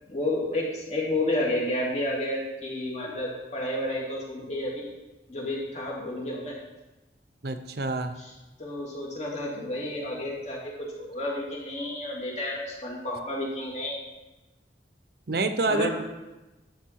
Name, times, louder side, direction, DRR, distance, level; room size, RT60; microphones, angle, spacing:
voice 1, 0.1-4.9 5.3-6.6 8.6-14.0 15.7-16.0, left 1 dB, 40° left, -3 dB, 3.0 m, -31 dB
voice 2, 7.4-8.1 15.3-16.0, right 3 dB, 60° right, 9 dB, 0.7 m, -27 dB
12.0 x 7.7 x 4.6 m, 1.1 s
head